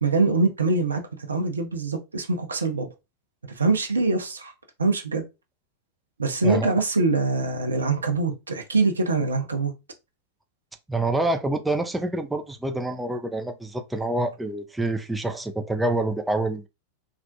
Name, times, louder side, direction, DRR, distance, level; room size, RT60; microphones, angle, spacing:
voice 1, 0.0-1.0 1.3-2.9 3.6-4.5 4.8-5.2 6.2-9.7, right 3 dB, 75° right, 0.5 m, -23 dB
voice 2, 6.4-6.7 10.9-16.7, right 2 dB, 5° right, 0.4 m, -27 dB
2.4 x 2.0 x 2.6 m
figure-of-eight pair, 90°, 0 cm